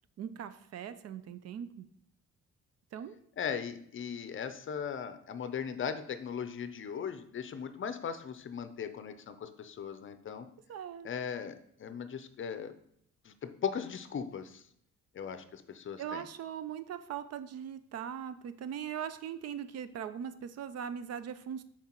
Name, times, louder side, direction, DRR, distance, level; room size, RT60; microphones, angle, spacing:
voice 1, 0.2-1.9 2.9-3.2 10.7-11.1 16.0-21.6, right 8 dB, 55° right, 12 dB, 0.5 m, -40 dB
voice 2, 3.4-10.5 11.0-12.7 13.2-14.6 15.1-16.2, left 7 dB, 40° left, 11 dB, 0.6 m, -38 dB
7.2 x 4.6 x 3.0 m, 0.70 s
cardioid pair, 90°, 30 cm